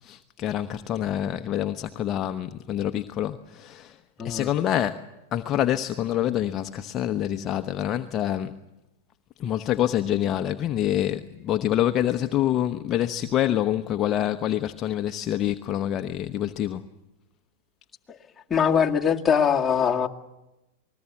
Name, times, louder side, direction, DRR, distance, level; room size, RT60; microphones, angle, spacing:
voice 1, 0.0-8.6 9.4-16.9, left 11 dB, 30° left, 1.0 m, -26 dB
voice 2, 4.2-4.5 18.5-20.1, left 7 dB, 15° left, 2.1 m, -22 dB
28.0 x 20.5 x 7.4 m
hypercardioid pair, 120°, 0 cm